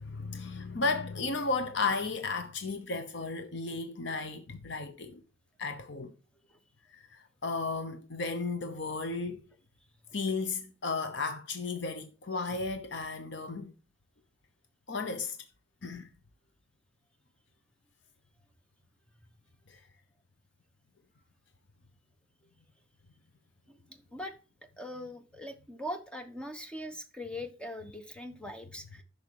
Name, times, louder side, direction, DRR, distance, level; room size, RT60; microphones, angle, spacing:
voice 1, 0.0-5.2 5.6-6.1 6.9-9.4 10.1-13.7 14.9-15.4 15.8-16.1 19.7-19.8, left 3 dB, 65° left, 0.9 m, -34 dB
voice 2, 23.7-24.3 24.8-29.0, left 1 dB, 5° left, 1.1 m, -41 dB
11.0 x 6.6 x 4.8 m
head